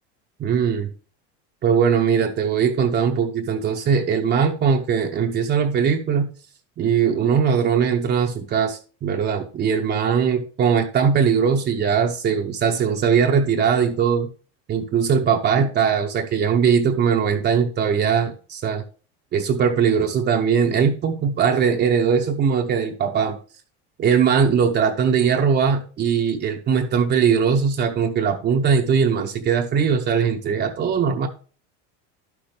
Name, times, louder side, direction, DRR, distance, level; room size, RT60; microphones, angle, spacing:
voice 1, 0.4-0.9 1.6-6.3 6.8-14.3 14.7-18.8 19.3-23.4 24.0-31.3, right 6 dB, 30° right, 2 dB, 0.8 m, -20 dB
11.5 x 6.1 x 3.3 m, 0.39 s
cardioid pair, 135°, 33 cm